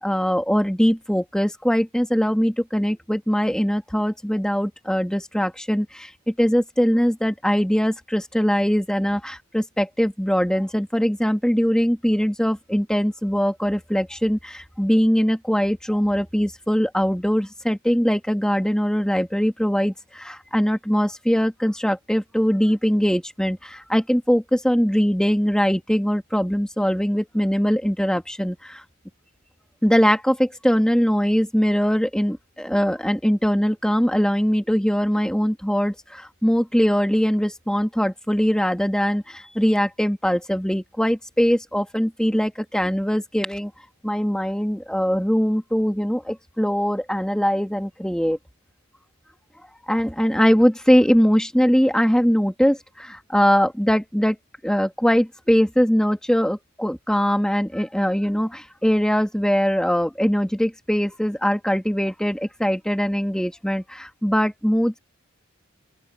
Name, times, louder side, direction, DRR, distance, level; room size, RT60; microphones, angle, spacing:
voice 1, 0.0-28.8 29.8-43.7 44.0-48.4 49.9-54.4 54.6-65.0, equal, 5° left, 1.9 m, -21 dB
open air
head